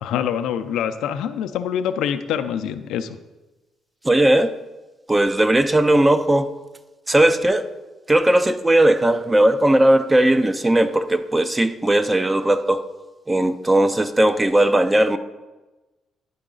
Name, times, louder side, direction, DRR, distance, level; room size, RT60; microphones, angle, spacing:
voice 1, 0.0-3.2, left 9 dB, 85° left, 10 dB, 0.4 m, -25 dB
voice 2, 4.0-4.5 5.1-6.5 7.1-7.6 8.1-12.8 13.3-15.2, right 1 dB, 15° right, 10 dB, 0.5 m, -17 dB
10.5 x 4.0 x 3.8 m, 1.1 s
cardioid pair, 90°, 0 cm